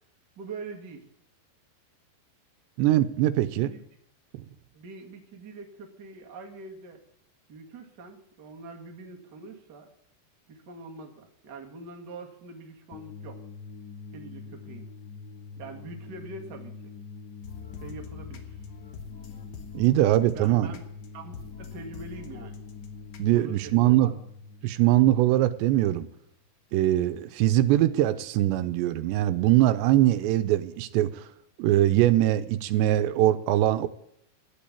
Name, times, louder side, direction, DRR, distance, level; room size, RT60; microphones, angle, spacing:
voice 1, 0.4-1.1 3.6-3.8 4.7-7.0 7.5-9.9 10.5-13.4 14.1-14.9 15.6-16.9 17.8-18.6 20.0-20.8 21.1-22.6 23.3-24.1, right 3 dB, 35° right, 2 dB, 1.7 m, -43 dB
voice 2, 2.8-3.7 19.7-20.7 23.2-24.1 24.6-26.1 26.7-31.2 31.6-33.9, right 14 dB, 85° right, 11 dB, 2.9 m, -22 dB
sound 1, 12.9-26.0, left 5 dB, 85° left, 3.7 m, -44 dB
sound 2, 17.4-23.4, left 7 dB, 70° left, 1.4 m, -46 dB
12.5 x 8.6 x 8.5 m, 0.69 s
omnidirectional pair, 5.0 m